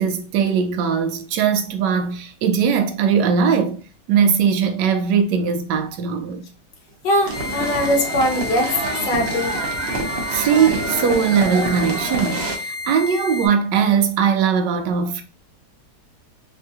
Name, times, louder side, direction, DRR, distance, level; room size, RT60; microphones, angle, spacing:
voice 1, 0.0-3.8 4.1-6.4 10.3-15.2, right 6 dB, 80° right, 1.2 m, -20 dB
voice 2, 7.0-9.6, left 1 dB, 90° left, 1.5 m, -21 dB
sound 1, 7.2-12.6, right 2 dB, 60° right, 0.7 m, -27 dB
sound 2, 7.3-13.5, left 3 dB, 30° left, 0.7 m, -31 dB
3.6 x 2.7 x 2.3 m
omnidirectional pair, 1.9 m